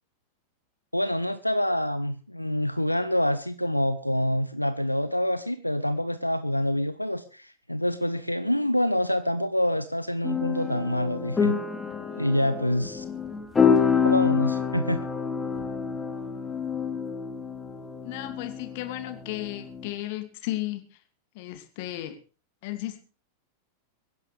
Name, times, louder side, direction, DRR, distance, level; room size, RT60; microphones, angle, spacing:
voice 1, 0.9-11.6 12.2-13.0 14.0-15.0, left 1 dB, 90° left, 0.8 m, -26 dB
sound 1, 10.2-19.9, left 6 dB, 15° left, 3.0 m, -27 dB
voice 2, 18.0-21.0 21.3-22.2 22.6-23.0, left 16 dB, 50° left, 2.4 m, -34 dB
24.5 x 10.5 x 3.4 m
figure-of-eight pair, 90°, 0 cm